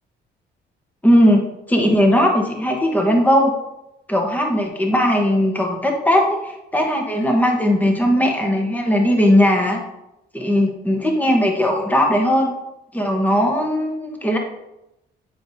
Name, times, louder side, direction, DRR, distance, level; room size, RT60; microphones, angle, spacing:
voice 1, 1.0-3.5 4.1-9.8 10.3-12.5 12.9-14.4, equal, 10° left, 2 dB, 1.1 m, -18 dB
9.0 x 5.1 x 2.7 m, 0.90 s
cardioid pair, 90°, 20 cm